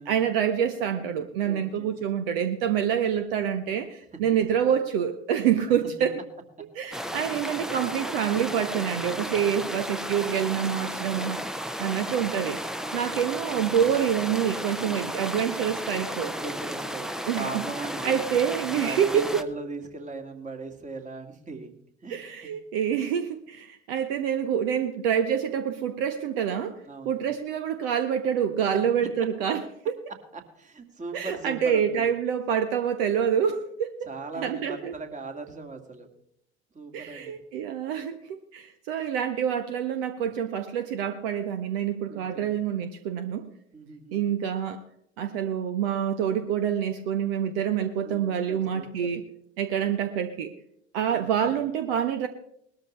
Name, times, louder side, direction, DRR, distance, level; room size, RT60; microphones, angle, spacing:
voice 1, 0.0-6.1 6.8-11.4 11.8-12.6 12.9-16.3 17.3-17.5 18.0-19.4 22.1-30.0 31.1-34.1 34.4-34.9 36.9-43.5 44.1-44.8 45.2-49.2 49.6-50.5 50.9-52.3, right 8 dB, 60° right, 9 dB, 0.9 m, -27 dB
voice 2, 1.4-2.0 6.8-6.9 9.2-9.7 12.7-13.7 14.9-15.3 16.2-18.3 18.7-21.7 22.0-22.2 26.9-27.2 30.3-32.1 34.0-36.1 36.7-37.3 42.1-42.6 43.7-44.2 48.0-48.9 51.1-51.5, right 3 dB, 20° right, 5 dB, 2.1 m, -39 dB
sound 1, 6.9-19.4, equal, ahead, 0.7 m, -34 dB
20.0 x 13.0 x 3.2 m, 0.72 s
figure-of-eight pair, 65°, 33 cm